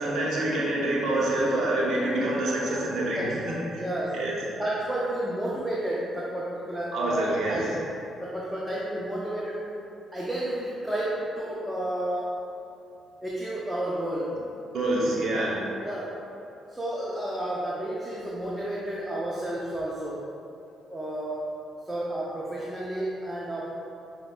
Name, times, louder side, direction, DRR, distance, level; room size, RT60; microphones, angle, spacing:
voice 1, 0.0-3.8 4.1-4.3 6.9-7.7 14.7-15.6, right 1 dB, 65° right, -4 dB, 0.7 m, -26 dB
voice 2, 3.2-3.5 3.8-4.3 4.6-7.8 8.2-9.8 10.1-12.4 13.2-14.4 15.8-16.2 16.7-20.3 20.9-21.5 21.8-23.7, right 1 dB, 10° right, -6 dB, 0.5 m, -31 dB
5.2 x 2.1 x 2.2 m, 2.7 s
hypercardioid pair, 50°, 0 cm